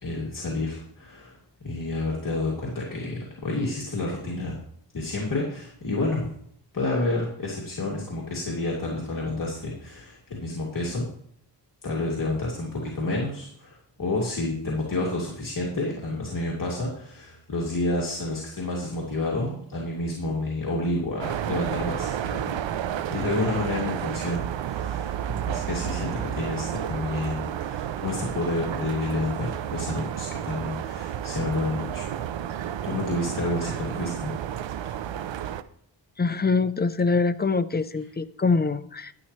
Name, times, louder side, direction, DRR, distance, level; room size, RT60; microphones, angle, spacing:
voice 1, 0.0-1.4 1.6-4.6 4.9-6.3 6.7-11.1 11.8-22.5 23.1-25.1 25.4-32.1 32.8-34.3, left 2 dB, 50° left, -4 dB, 2.6 m, -29 dB
sound 1, 21.2-35.6, right 10 dB, 80° right, 0.7 m, -31 dB
voice 2, 36.2-39.1, left 4 dB, 25° left, 12 dB, 0.6 m, -24 dB
12.0 x 10.5 x 3.2 m, 0.64 s
wide cardioid pair, 100°, 44 cm